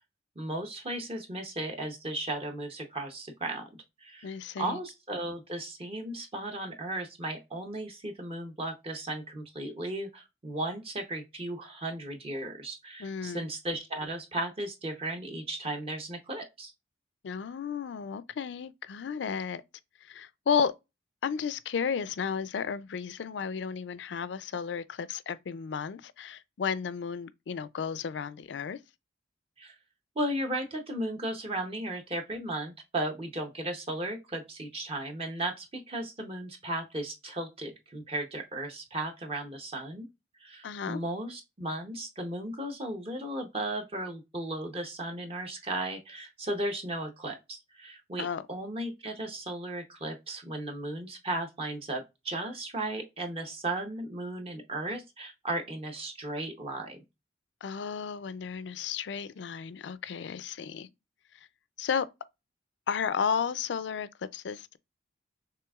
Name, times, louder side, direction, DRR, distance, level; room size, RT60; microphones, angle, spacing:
voice 1, 0.4-3.6 4.0-4.3 4.6-16.7 29.6-29.7 30.2-40.1 40.4-57.0, right 1 dB, 30° right, 0.7 m, -35 dB
voice 2, 4.2-4.8 13.0-13.5 17.2-19.6 20.0-20.7 21.2-28.8 40.6-41.0 48.2-48.5 57.6-60.9 61.8-62.1 62.9-64.8, left 6 dB, 70° left, 0.4 m, -33 dB
5.9 x 3.4 x 2.3 m
head